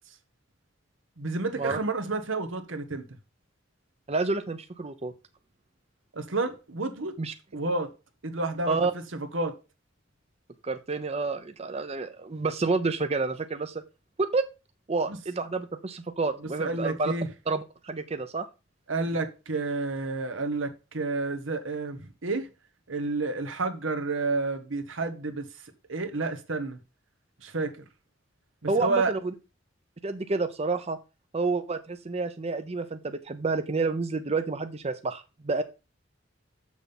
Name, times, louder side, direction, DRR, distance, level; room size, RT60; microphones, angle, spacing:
voice 1, 1.2-3.1 6.1-7.2 7.5-7.9 8.2-8.8 9.1-9.6 15.1-15.2 16.6-17.3 18.9-22.5 22.9-25.5 25.9-26.8 27.4-27.7 28.6-29.2, right 3 dB, 85° right, 1.3 m, -30 dB
voice 2, 4.1-5.1 7.2-7.3 8.7-8.9 10.6-13.8 14.2-14.4 14.9-17.1 17.5-18.4 28.7-29.2 30.0-31.0 31.3-35.6, right 3 dB, 35° right, 0.7 m, -29 dB
7.1 x 6.3 x 5.3 m
head